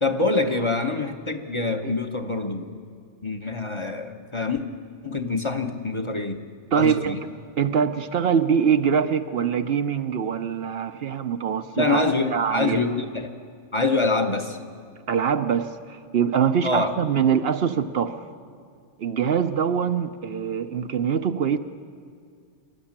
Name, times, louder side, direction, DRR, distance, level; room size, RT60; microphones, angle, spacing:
voice 1, 0.0-2.7 3.2-4.6 5.0-6.4 6.7-7.2 11.8-13.3 13.7-14.6 16.6-16.9, left 3 dB, 25° left, 5 dB, 0.9 m, -25 dB
voice 2, 6.7-7.3 7.6-12.8 15.1-18.2 19.0-21.6, right 7 dB, 60° right, 9 dB, 0.9 m, -23 dB
24.5 x 12.5 x 8.8 m, 2.2 s
omnidirectional pair, 1.2 m